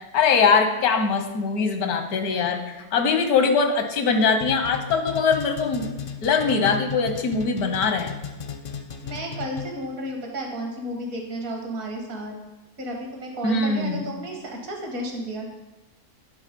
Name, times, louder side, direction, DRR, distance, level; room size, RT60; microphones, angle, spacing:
voice 1, 0.1-2.6 2.9-5.9 6.2-8.1 13.4-14.0, left 5 dB, 85° left, 6 dB, 1.4 m, -22 dB
sound 1, 4.4-9.9, left 6 dB, 55° left, 0.6 m, -35 dB
voice 2, 9.0-12.3 12.8-15.5, right 1 dB, 70° right, 1 dB, 1.8 m, -32 dB
10.5 x 3.6 x 5.1 m, 1.0 s
omnidirectional pair, 1.5 m